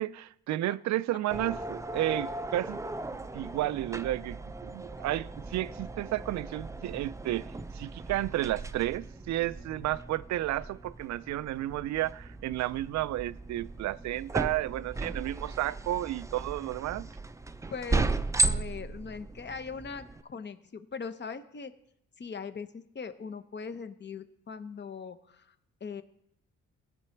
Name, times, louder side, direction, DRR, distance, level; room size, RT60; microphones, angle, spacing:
voice 1, 0.0-2.8 3.3-7.5 7.7-17.1, right 15 dB, 65° right, 0.4 m, -32 dB
sound 1, 1.3-20.2, right 2 dB, 10° right, 0.4 m, -36 dB
voice 2, 17.7-18.1 18.4-21.7 22.2-25.5 25.8-26.0, left 5 dB, 35° left, 0.9 m, -40 dB
18.0 x 6.0 x 4.5 m
cardioid pair, 90°, 30 cm